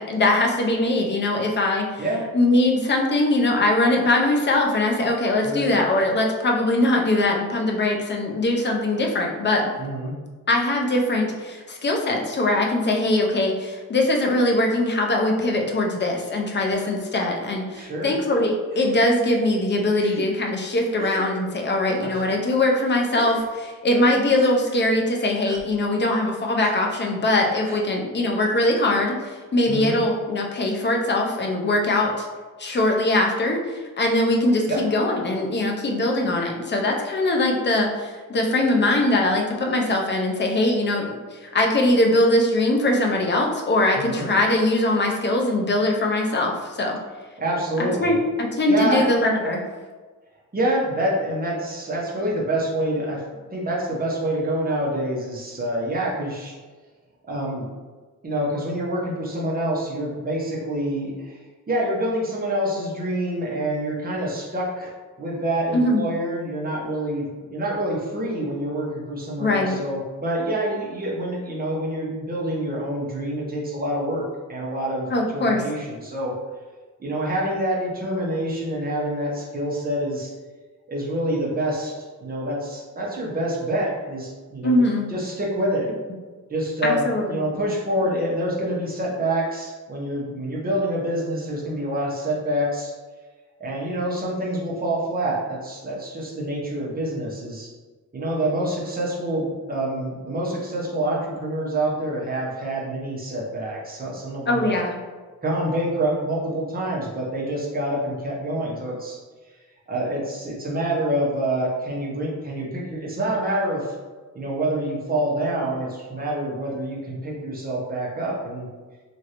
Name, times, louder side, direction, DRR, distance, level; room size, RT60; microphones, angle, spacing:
voice 1, 0.0-2.0 2.3-9.7 10.5-32.3 32.6-47.0 48.0-49.7 65.7-66.1 69.4-69.8 75.1-75.6 84.6-85.1 86.8-87.4 104.5-104.9, left 1 dB, 35° left, 1 dB, 0.4 m, -21 dB
voice 2, 9.8-10.1 17.8-18.1 21.9-22.1 29.7-30.0 34.7-34.8 44.0-44.3 47.4-48.2 48.7-49.0 50.5-53.2 53.5-56.5 57.3-57.7 58.2-61.4 61.7-64.9 65.2-76.3 77.0-80.3 80.9-81.9 82.2-84.8 85.1-85.9 86.5-87.0 87.3-92.9 93.6-97.7 98.1-104.8 105.4-109.2 109.9-113.9 114.3-118.7, right 1 dB, 30° right, -4 dB, 0.7 m, -26 dB
Gasp, 16.7-16.9 17.7-17.9 18.7-19.1 19.9-20.3 21.0-21.2 22.1-22.3 23.1-23.5 24.4-24.5 25.4-25.6 26.6-26.7 27.6-27.8, right 3 dB, 70° right, 0.5 m, -39 dB
3.1 x 2.5 x 2.8 m, 1.4 s
wide cardioid pair, 160°, 33 cm